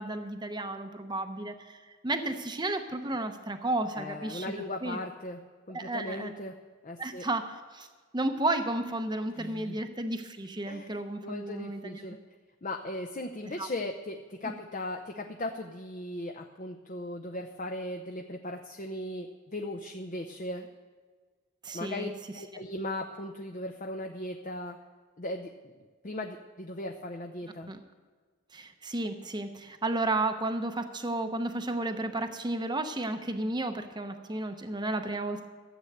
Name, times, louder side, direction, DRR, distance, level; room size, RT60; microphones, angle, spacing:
voice 1, 0.0-5.0 5.7-6.3 7.0-7.9 8.1-12.0 13.6-13.7 14.4-14.5 21.6-22.1 22.5-22.6 27.7-27.8 28.5-35.5, right 2 dB, 20° right, 7 dB, 0.8 m, -33 dB
voice 2, 3.9-5.4 5.7-6.6 6.8-7.3 9.3-9.8 10.7-12.2 12.6-20.7 21.7-22.1 22.3-24.8 25.2-25.7 26.0-27.7, left 1 dB, 35° left, 3 dB, 0.7 m, -38 dB
14.0 x 7.9 x 7.9 m, 1.5 s
head